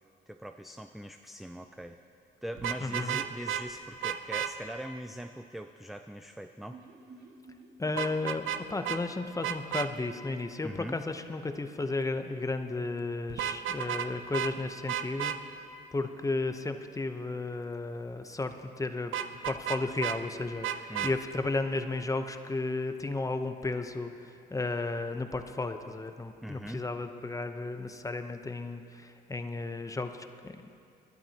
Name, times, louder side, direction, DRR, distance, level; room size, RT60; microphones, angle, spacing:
voice 1, 0.3-2.0 2.4-6.8 10.6-11.0 20.9-21.1 26.4-26.8, equal, ahead, 7 dB, 0.4 m, -41 dB
Vehicle horn car horn honking, 2.6-3.6 4.0-4.5 8.0-8.6 8.8-9.0 9.4-9.9 13.3-14.1 14.3-14.5 14.9-15.4 19.1-20.2 20.6-21.1, right 10 dB, 80° right, 0.6 m, -32 dB
voice 2, 2.8-3.2 7.8-19.1 19.4-30.8, left 3 dB, 15° left, 7 dB, 0.8 m, -34 dB
sound 1, 6.7-10.6 10.8-10.9 11.2-11.3, right 3 dB, 60° right, 3.1 m, -55 dB
22.5 x 12.0 x 2.9 m, 2.5 s
cardioid pair, 90°, 20 cm